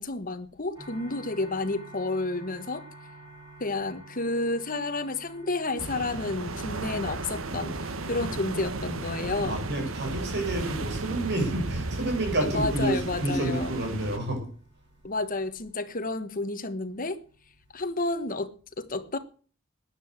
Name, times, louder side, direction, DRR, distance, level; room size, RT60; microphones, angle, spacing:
voice 1, 0.0-2.9 3.6-9.6 12.4-13.8 15.0-17.2 17.7-19.2, left 2 dB, 45° left, 1.4 m, -31 dB
sound 1, 0.8-18.5, right 2 dB, 20° right, 5.0 m, -52 dB
sound 2, 5.8-14.2, right 2 dB, 80° right, 1.4 m, -34 dB
voice 2, 9.3-14.5, right 1 dB, 55° right, 6.7 m, -29 dB
13.0 x 10.5 x 8.0 m
head